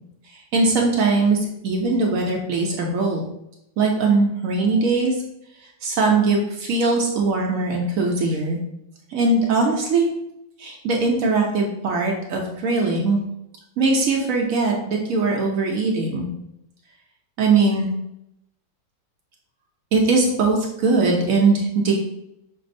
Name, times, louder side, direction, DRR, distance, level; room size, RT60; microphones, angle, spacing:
voice 1, 0.5-1.4 1.6-3.2 3.8-5.1 5.8-8.6 9.1-10.1 10.6-13.2 13.8-16.2 17.4-17.9 19.9-21.9, right 3 dB, 70° right, 0 dB, 0.8 m, -20 dB
5.8 x 2.0 x 2.5 m, 0.82 s
omnidirectional pair, 2.0 m